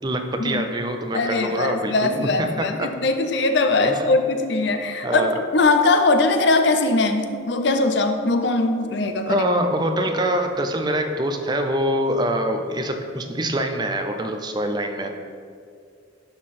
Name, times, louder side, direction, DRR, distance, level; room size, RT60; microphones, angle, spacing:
voice 1, 0.0-2.9 3.8-4.1 5.0-5.3 9.3-15.1, right 1 dB, 20° right, 5 dB, 0.5 m, -24 dB
voice 2, 1.1-5.3 5.5-9.4, left 3 dB, 60° left, 7 dB, 0.6 m, -21 dB
11.0 x 3.9 x 4.2 m, 2.3 s
head